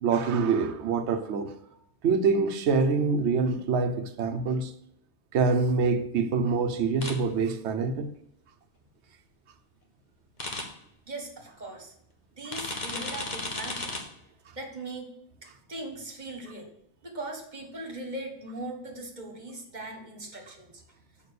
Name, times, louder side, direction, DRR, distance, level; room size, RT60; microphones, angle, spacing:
voice 1, 0.0-1.5 2.0-4.7 5.3-8.1, right 4 dB, 75° right, 1.0 m, -25 dB
sound 1, 7.0-7.1 10.4-10.6 12.5-14.0, left 2 dB, 40° left, 1.4 m, -33 dB
voice 2, 11.1-11.9 12.4-14.1 14.5-15.1 15.7-16.7 17.0-20.8, right 2 dB, 40° right, 1.5 m, -39 dB
6.8 x 5.3 x 6.7 m
omnidirectional pair, 1.1 m